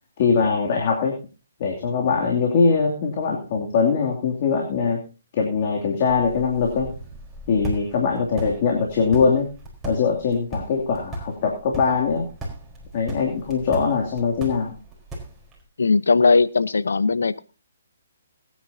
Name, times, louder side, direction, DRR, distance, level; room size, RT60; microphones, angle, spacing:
voice 1, 0.2-1.2 1.6-5.0 5.3-6.9 7.5-9.5 9.8-12.3 12.9-14.8, left 5 dB, 45° left, 0 dB, 2.7 m, -22 dB
sound 1, 6.1-15.6, right 1 dB, 10° right, 4.2 m, -37 dB
voice 2, 15.8-17.4, left 4 dB, 80° left, 15 dB, 0.8 m, -18 dB
21.5 x 9.5 x 2.8 m, 0.33 s
hypercardioid pair, 145°, 0 cm